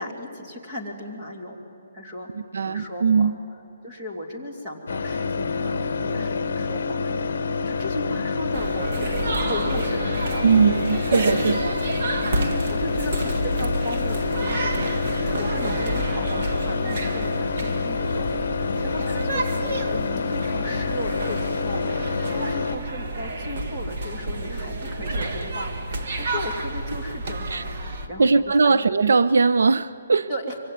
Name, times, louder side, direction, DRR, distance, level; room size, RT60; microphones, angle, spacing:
voice 1, 0.0-1.6 1.9-2.3 2.6-3.3 3.8-10.6 11.3-11.6 12.3-28.8 30.3-30.5, left 1 dB, 15° right, 2.8 m, -35 dB
voice 2, 2.3-3.4 10.4-11.7 27.5-27.6 28.2-30.3, right 4 dB, 80° right, 0.7 m, -20 dB
sound 1, 4.9-22.8, left 4 dB, 50° left, 1.3 m, -27 dB
sound 2, 7.5-24.5, left 4 dB, 30° left, 4.3 m, -48 dB
sound 3, 8.5-28.1, right 2 dB, 40° right, 1.5 m, -30 dB
24.5 x 24.0 x 9.5 m
hypercardioid pair, 180°, 0 cm